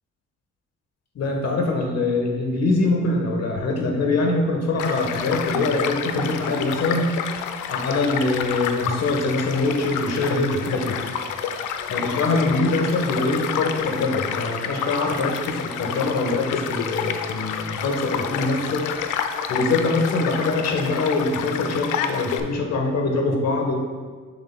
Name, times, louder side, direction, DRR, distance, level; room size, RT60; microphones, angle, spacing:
voice 1, 1.1-7.1 7.7-10.9 11.9-18.8 19.5-23.8, left 2 dB, 55° left, 2 dB, 1.2 m, -23 dB
Child speech kid speaking / Stream / Car passing by, 4.8-22.4, left 8 dB, 85° left, 0.5 m, -29 dB
7.1 x 6.4 x 2.2 m, 1.5 s
cardioid pair, 90°, 30 cm